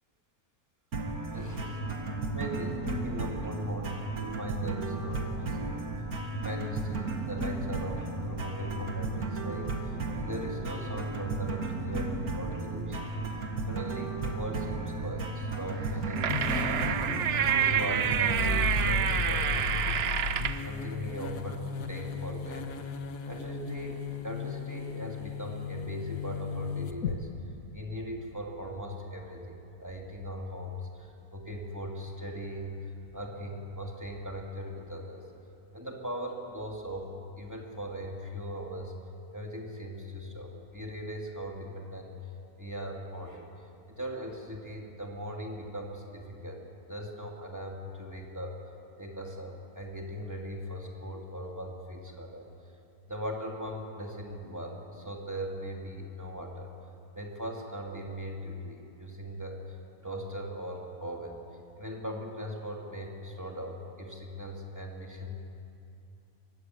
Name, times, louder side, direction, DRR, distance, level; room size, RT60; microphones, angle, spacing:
sound 1, 0.9-19.1, right 3 dB, 80° right, 2.4 m, -34 dB
voice 1, 1.3-1.8 2.3-5.9 6.3-13.1 13.7-20.1 20.6-22.8 23.3-27.3 27.7-35.3 35.7-37.1 37.4-38.9 39.3-42.1 42.6-48.6 49.0-52.5 53.1-56.7 57.1-59.8 60.0-61.4 61.8-65.3, equal, 10° right, 0 dB, 2.9 m, -39 dB
sound 2, 15.8-20.7, right 9 dB, 55° right, 0.8 m, -28 dB
sound 3, 16.3-27.2, left 5 dB, 70° left, 1.6 m, -35 dB
23.5 x 19.5 x 8.0 m, 2.7 s
omnidirectional pair, 1.5 m